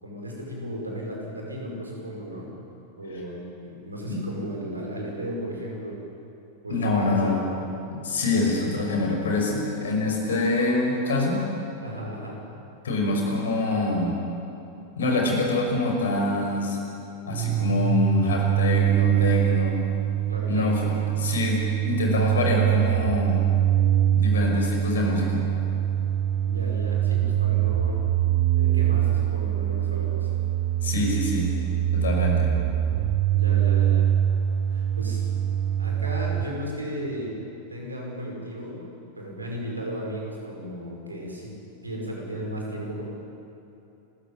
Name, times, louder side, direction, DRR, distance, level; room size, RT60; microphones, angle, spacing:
voice 1, 0.0-2.6 3.0-6.0 6.6-7.4 11.8-12.4 20.3-20.8 26.4-28.0 28.6-30.3 33.3-34.1 34.7-35.2 35.8-37.4 37.7-38.9 39.2-43.1, equal, 80° right, -1 dB, 5.5 m, -35 dB
voice 2, 6.7-7.4 7.9-11.4 12.8-14.2 15.0-16.8 17.3-19.8 20.5-23.4 24.1-25.4 30.8-31.5 31.9-32.5, left 2 dB, 65° left, 1 dB, 5.7 m, -25 dB
sound 1, 17.3-36.5, right 11 dB, 40° right, 0.9 m, -23 dB
29.5 x 14.5 x 8.9 m, 2.9 s
figure-of-eight pair, 90°, 0 cm